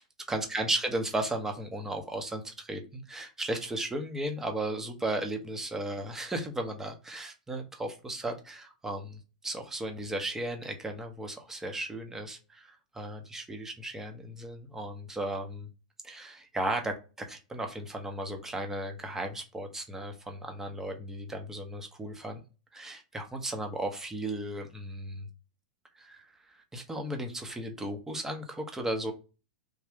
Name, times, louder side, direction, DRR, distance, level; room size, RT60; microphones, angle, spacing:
voice 1, 0.3-15.7 16.0-22.4 22.7-25.3 26.0-29.1, right 1 dB, 10° right, 4 dB, 0.9 m, -35 dB
3.5 x 2.4 x 3.5 m, 0.31 s
hypercardioid pair, 105°, 4 cm